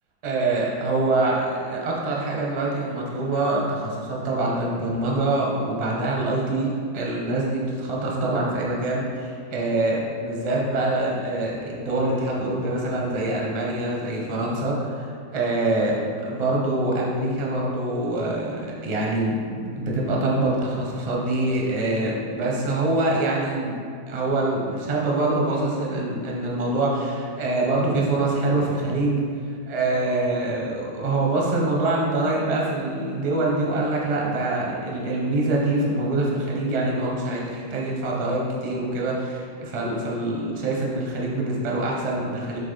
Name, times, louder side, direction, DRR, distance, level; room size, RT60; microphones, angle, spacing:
voice 1, 0.2-23.7 24.1-29.2 29.7-42.6, right 2 dB, 35° right, -3 dB, 0.6 m, -25 dB
7.4 x 3.5 x 4.0 m, 2.2 s
omnidirectional pair, 2.0 m